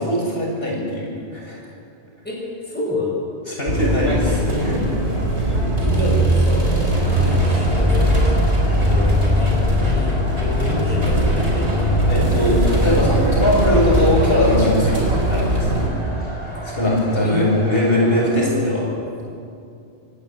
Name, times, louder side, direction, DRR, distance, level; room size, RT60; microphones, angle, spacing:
voice 1, 0.0-1.6 3.5-4.8 5.4-5.5 12.1-15.9 16.6-18.8, equal, 55° left, -4 dB, 7.8 m, -20 dB
voice 2, 2.2-3.3 5.8-8.4 8.9-11.7 12.2-12.5 17.2-17.4, left 1 dB, 10° left, -3 dB, 5.7 m, -28 dB
sound 1, 3.7-15.9, equal, 75° right, 5.2 m, -19 dB
sound 2, 6.9-18.4, left 1 dB, 25° right, 5.9 m, -34 dB
27.5 x 18.0 x 9.1 m, 2.5 s
omnidirectional pair, 1.1 m